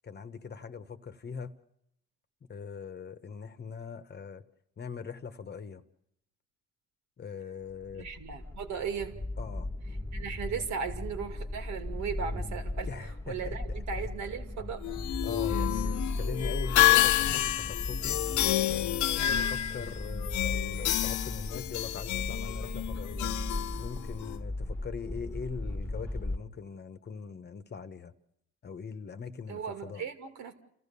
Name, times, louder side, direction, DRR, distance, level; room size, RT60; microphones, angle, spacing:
voice 1, 0.0-1.5 2.5-4.4 4.8-5.8 7.2-8.1 9.4-9.7 12.9-13.6 14.0-14.1 15.2-18.2 18.7-23.3 23.8-28.1 28.6-30.0, left 6 dB, 35° left, 1.1 m, -41 dB
sound 1, 7.8-26.4, left 1 dB, 10° left, 1.5 m, -37 dB
voice 2, 7.9-9.2 10.1-12.9 13.3-14.8 29.5-30.5, right 6 dB, 75° right, 2.4 m, -37 dB
sound 2, 14.8-24.4, left 14 dB, 85° left, 0.8 m, -29 dB
29.5 x 15.0 x 6.9 m
cardioid pair, 120°, 29 cm